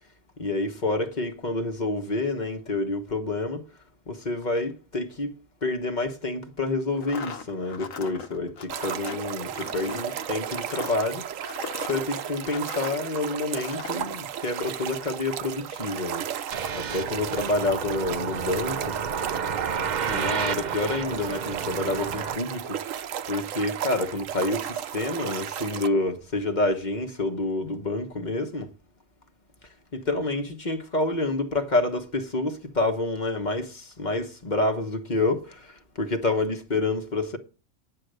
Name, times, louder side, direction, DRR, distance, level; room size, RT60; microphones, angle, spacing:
voice 1, 0.4-3.7 4.1-5.3 5.6-11.3 11.9-19.0 20.0-28.7 29.9-37.4, left 2 dB, 35° left, 1.2 m, -28 dB
sound 1, 6.9-13.1 13.5-14.1, left 6 dB, 80° left, 1.6 m, -39 dB
sound 2, 8.7-25.9, right 9 dB, 80° right, 1.1 m, -34 dB
sound 3, 16.5-22.4, right 6 dB, 50° right, 0.6 m, -31 dB
9.8 x 6.4 x 7.9 m
omnidirectional pair, 1.4 m